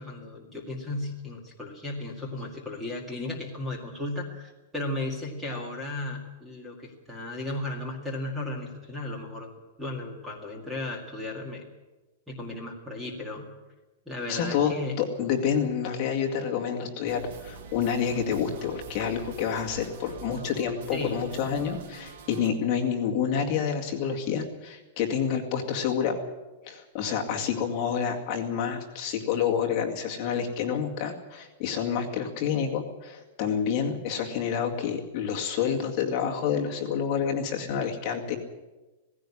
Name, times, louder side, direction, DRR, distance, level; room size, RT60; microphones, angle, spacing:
voice 1, 0.0-9.5 9.8-11.6 12.3-13.5 14.1-15.0 20.9-21.2, left 2 dB, 5° right, 1 dB, 2.0 m, -35 dB
voice 2, 14.3-26.2 26.6-38.4, left 7 dB, 30° left, 0 dB, 2.2 m, -28 dB
sound 1, 17.1-22.5, right 6 dB, 65° right, 2.3 m, -45 dB
17.5 x 16.0 x 10.0 m, 1.1 s
supercardioid pair, 180°, 0 cm